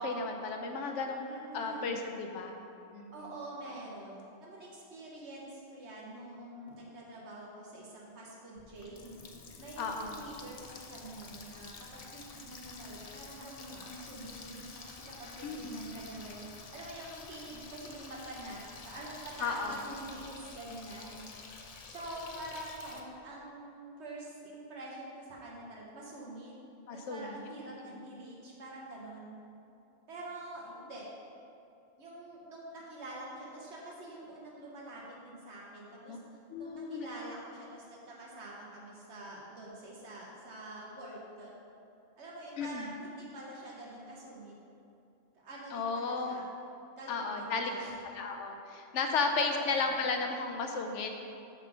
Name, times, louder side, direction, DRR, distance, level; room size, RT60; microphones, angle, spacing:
voice 1, 0.0-1.3 1.5-2.5 2.9-3.1 9.8-10.1 15.4-15.8 19.4-19.8 26.9-27.2 36.1-36.2 36.5-37.1 42.6-42.9 45.7-46.4 47.1-47.7 48.2-51.1, left 4 dB, 75° left, 4 dB, 1.0 m, -34 dB
voice 2, 1.3-2.0 3.1-9.2 9.6-16.4 16.7-21.3 21.9-26.5 26.9-29.3 30.1-31.1 32.0-36.2 36.5-41.5 42.2-44.5 45.4-46.5 47.0-47.9 49.5-49.9, right 1 dB, 65° right, -4 dB, 1.3 m, -46 dB
Water tap faucet, 8.6-23.0, left 4 dB, 60° left, 0.4 m, -49 dB
5.7 x 3.7 x 5.9 m, 2.6 s
omnidirectional pair, 1.2 m